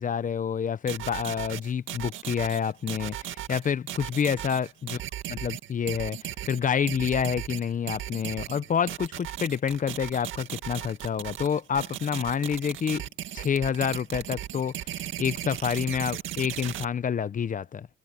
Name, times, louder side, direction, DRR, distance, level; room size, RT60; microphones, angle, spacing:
voice 1, 0.0-5.0 5.3-13.0 13.3-17.9, left 7 dB, 40° left, 0.8 m, -28 dB
sound 1, 0.9-16.8, right 12 dB, 80° right, 2.1 m, -36 dB
cardioid pair, 90°, 20 cm